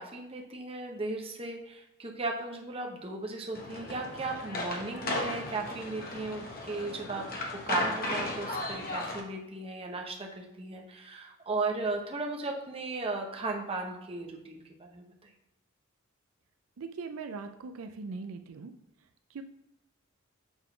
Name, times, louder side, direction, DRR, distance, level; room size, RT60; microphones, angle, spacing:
voice 1, 0.0-15.1, right 3 dB, 30° right, 1 dB, 1.0 m, -36 dB
sound 1, 3.5-9.2, left 2 dB, 45° left, 1.2 m, -35 dB
voice 2, 16.8-18.7 19.3-19.4, right 4 dB, 80° right, 7 dB, 0.5 m, -40 dB
7.1 x 3.8 x 5.6 m, 0.87 s
head